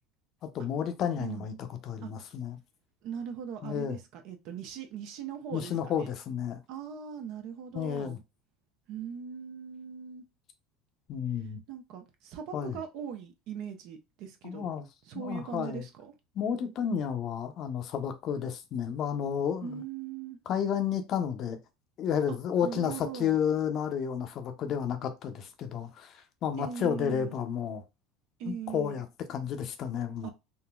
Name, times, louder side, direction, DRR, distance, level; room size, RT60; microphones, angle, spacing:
voice 1, 0.4-1.5 1.8-2.6 3.6-4.0 5.5-6.6 7.7-8.2 11.1-11.6 12.5-12.8 14.4-14.9 15.1-15.8 16.3-19.8 20.5-21.6 22.0-27.8 28.5-30.3, left 8 dB, 50° left, 0.6 m, -31 dB
voice 2, 1.2-1.5 2.0-2.1 3.0-6.1 6.7-8.2 8.9-10.2 11.7-14.7 15.0-16.1 19.6-20.4 22.3-23.4 26.6-27.4 28.4-29.0 30.2-30.3, right 7 dB, 65° right, 0.6 m, -40 dB
3.7 x 2.0 x 2.3 m
hypercardioid pair, 80°, 0 cm